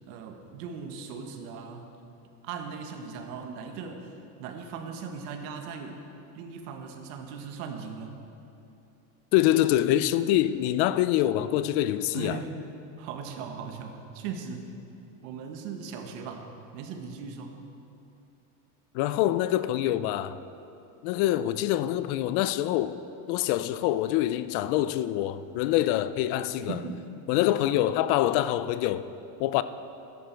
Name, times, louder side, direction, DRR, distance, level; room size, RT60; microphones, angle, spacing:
voice 1, 0.1-1.9 2.4-6.0 6.3-8.2 12.1-12.6 13.0-14.8 15.2-17.5 26.7-27.1, right 5 dB, 75° right, 1.5 m, -38 dB
voice 2, 9.3-12.4 18.9-20.4 21.0-23.0 23.3-26.8 27.3-29.1 29.4-29.6, left 13 dB, 55° left, 0.5 m, -25 dB
13.0 x 11.0 x 4.5 m
supercardioid pair, 135°, 49 cm